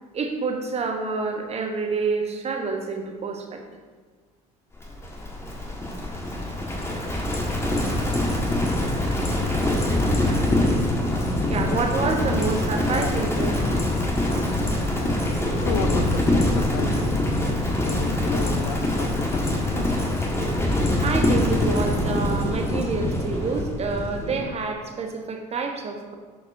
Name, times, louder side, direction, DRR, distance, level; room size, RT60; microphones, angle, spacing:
voice 1, 0.1-3.8 11.5-13.5 21.0-26.1, right 4 dB, 30° right, 4 dB, 1.1 m, -28 dB
Livestock farm animals working animals, 4.8-24.5, left 1 dB, 10° left, 1.6 m, -24 dB
voice 2, 14.9-20.0, left 7 dB, 65° left, 9 dB, 0.5 m, -34 dB
10.5 x 5.0 x 2.7 m, 1.5 s
figure-of-eight pair, 60°, 21 cm